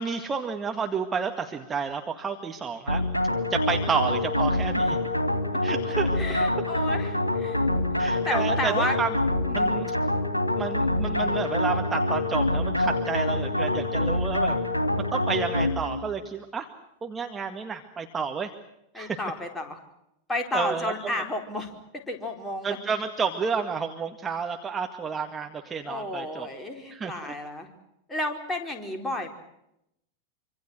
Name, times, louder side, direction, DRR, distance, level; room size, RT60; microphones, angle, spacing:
voice 1, 0.0-3.0 3.5-5.0 5.6-6.2 8.0-9.1 9.5-9.9 10.6-14.6 15.1-16.7 17.0-18.5 18.9-19.2 20.5-20.9 22.6-26.5 26.9-27.3, right 5 dB, 20° right, 4 dB, 2.0 m, -30 dB
sound 1, 2.9-16.1, left 1 dB, 85° left, 2.4 m, -26 dB
voice 2, 6.2-9.0 9.5-9.8 18.9-19.8 20.3-22.8 25.8-27.7 28.1-29.3, left 1 dB, 15° left, 4 dB, 4.6 m, -32 dB
26.0 x 26.0 x 6.3 m, 0.82 s
figure-of-eight pair, 90°, 0 cm